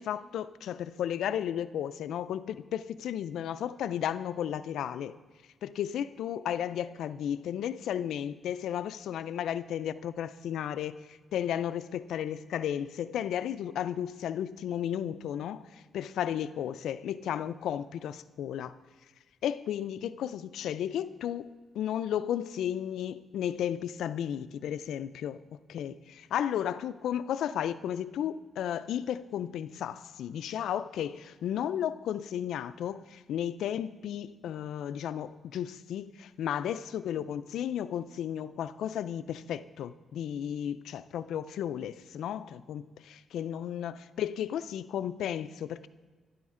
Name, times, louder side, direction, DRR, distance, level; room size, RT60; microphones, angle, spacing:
voice 1, 0.0-5.2 5.6-18.8 19.4-45.9, left 10 dB, 85° left, 14 dB, 0.3 m, -34 dB
12.0 x 10.0 x 3.7 m, 1.3 s
wide cardioid pair, 160°, 0 cm